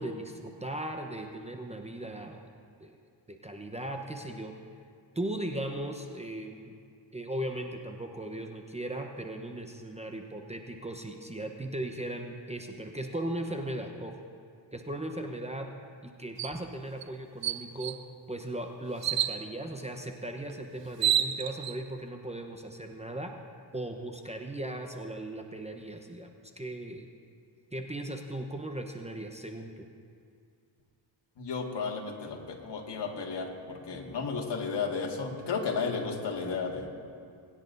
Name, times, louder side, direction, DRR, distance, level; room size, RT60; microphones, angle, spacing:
voice 1, 0.0-2.5 2.8-3.0 3.3-4.5 5.1-6.7 7.1-14.2 14.7-15.7 16.0-18.0 18.3-23.3 23.7-26.3 26.6-27.1 27.7-29.9 33.9-34.0, right 1 dB, 15° right, 3 dB, 0.9 m, -37 dB
sound 1, 16.4-16.6 17.0-17.1 17.4-18.0 19.0-19.4 20.5-20.6 20.9-21.7, right 10 dB, 60° right, 0.7 m, -28 dB
voice 2, 31.4-36.9, left 5 dB, 55° left, 0 dB, 2.0 m, -33 dB
20.5 x 10.0 x 2.7 m, 2.4 s
cardioid pair, 65°, 49 cm